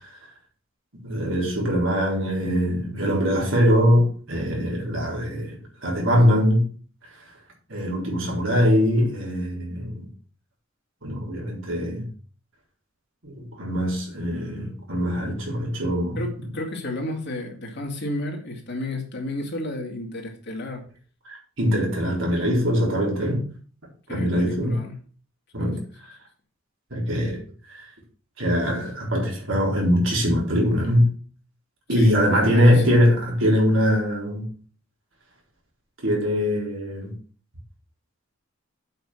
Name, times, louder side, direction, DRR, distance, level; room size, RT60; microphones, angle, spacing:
voice 1, 1.0-6.7 7.7-10.1 11.0-12.1 13.2-16.2 21.3-23.5 24.1-24.8 25.5-25.8 26.9-27.9 28.4-31.1 31.9-34.5 36.0-37.1, equal, 70° right, 4.2 m, -22 dB
voice 2, 16.2-20.9 24.1-25.0 25.6-25.7 31.9-33.0, left 1 dB, 55° left, 2.7 m, -32 dB
8.1 x 6.1 x 6.4 m
head